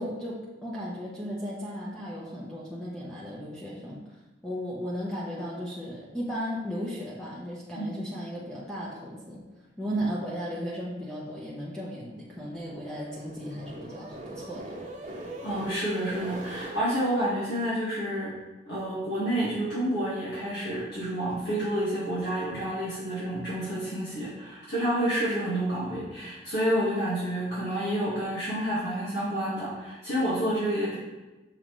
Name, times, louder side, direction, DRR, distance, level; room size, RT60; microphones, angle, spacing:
voice 1, 0.0-4.0 4.4-9.4 9.8-14.8, equal, 5° left, -6 dB, 1.0 m, -35 dB
sound 1, 12.1-16.8, right 1 dB, 40° right, 1.0 m, -41 dB
voice 2, 15.4-18.3 18.7-31.0, right 1 dB, 65° left, -9 dB, 2.0 m, -29 dB
6.7 x 5.7 x 3.2 m, 1.1 s
head